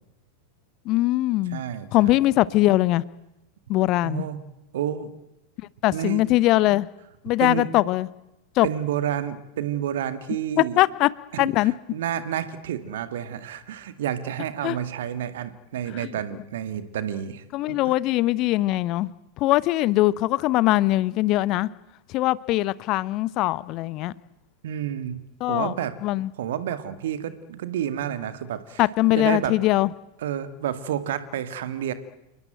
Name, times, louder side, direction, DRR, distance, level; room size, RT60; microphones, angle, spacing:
voice 1, 0.9-1.6 1.9-3.0 3.7-4.2 5.8-6.9 7.2-8.1 8.6-8.7 10.6-11.1 11.4-11.7 14.6-14.8 16.0-16.1 17.5-19.1 19.4-21.7 22.1-24.1 25.4-25.7 26.0-26.3 28.8-29.9, left 17 dB, 40° left, 20 dB, 0.9 m, -21 dB
voice 2, 1.5-2.2 4.0-4.4 4.7-5.1 5.9-6.2 7.4-7.7 8.6-10.8 11.3-18.0 24.6-25.2 25.5-25.9 26.4-28.8 29.2-29.6 30.2-31.9, right 10 dB, 60° right, 11 dB, 2.2 m, -30 dB
29.5 x 19.0 x 9.1 m, 0.92 s
figure-of-eight pair, 90°, 0 cm